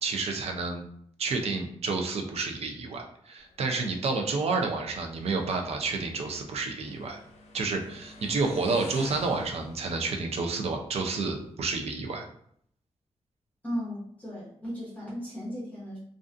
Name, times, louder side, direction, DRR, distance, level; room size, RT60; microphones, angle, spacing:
voice 1, 0.0-0.9 1.2-7.2 7.5-12.3, right 3 dB, 70° right, 3 dB, 0.5 m, -30 dB
Motorcycle, 3.4-11.7, left 2 dB, 75° left, 0.5 m, -49 dB
voice 2, 13.6-16.0, equal, 15° left, -7 dB, 0.8 m, -36 dB
2.5 x 2.3 x 2.4 m, 0.66 s
wide cardioid pair, 145°, 11 cm